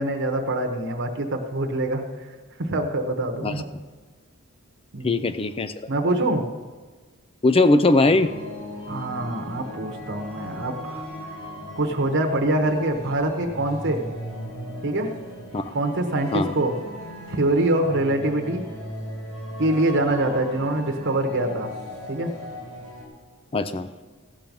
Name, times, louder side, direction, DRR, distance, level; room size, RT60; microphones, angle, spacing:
voice 1, 0.0-2.0 2.6-3.7 4.9-5.2 5.9-6.5 8.9-11.0 11.8-14.0 14.8-15.1 15.7-16.8 17.3-18.7 19.6-21.7 22.1-22.3, right 1 dB, 55° right, 3 dB, 1.0 m, -24 dB
voice 2, 5.0-5.7 7.4-8.3 15.5-15.6 16.3-16.5 23.5-23.9, left 2 dB, 25° left, 11 dB, 0.4 m, -19 dB
sound 1, 8.0-23.1, equal, 85° left, 2.8 m, -37 dB
15.5 x 6.1 x 5.3 m, 1.4 s
head